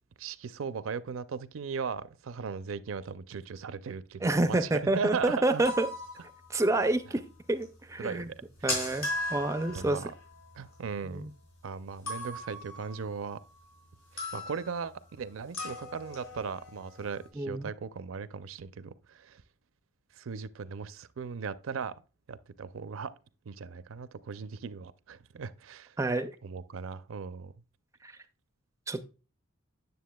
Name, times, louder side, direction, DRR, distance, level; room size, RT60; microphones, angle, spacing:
voice 1, 0.2-5.6 8.0-8.8 9.7-10.1 10.6-11.3 11.6-13.4 14.3-19.4 20.2-22.0 22.3-23.1 23.5-26.0 26.4-27.5, right 5 dB, 75° right, 0.5 m, -38 dB
voice 2, 4.2-5.9 6.5-7.2 7.5-8.3 8.6-10.0 11.1-11.3 17.4-17.7 26.0-26.4 28.0-28.1 28.9-29.1, right 2 dB, 15° right, 0.4 m, -28 dB
sound 1, 5.5-6.9 7.2-7.3 7.6-7.7 7.9-8.0 8.1-11.5 12.0-13.8 14.2-14.9 15.5-17.3, left 2 dB, 75° left, 4.3 m, -39 dB
9.4 x 6.9 x 2.2 m
head